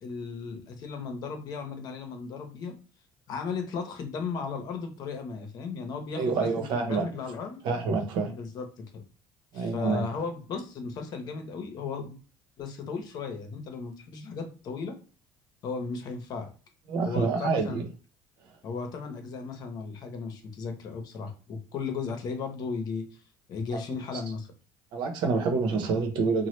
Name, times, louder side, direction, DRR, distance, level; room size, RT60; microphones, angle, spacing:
voice 1, 0.0-2.7 3.3-7.6 8.3-8.7 8.9-9.0 9.5-12.2 12.6-14.9 15.6-16.5 17.0-17.8 18.6-23.0 23.5-24.5, left 5 dB, 55° left, 5 dB, 0.8 m, -35 dB
voice 2, 6.1-7.1 7.6-8.3 9.5-10.0 16.9-17.8 23.7-23.8 24.9-26.5, right 4 dB, 70° right, 3 dB, 0.9 m, -27 dB
3.0 x 2.2 x 3.1 m, 0.37 s
cardioid pair, 110°, 8 cm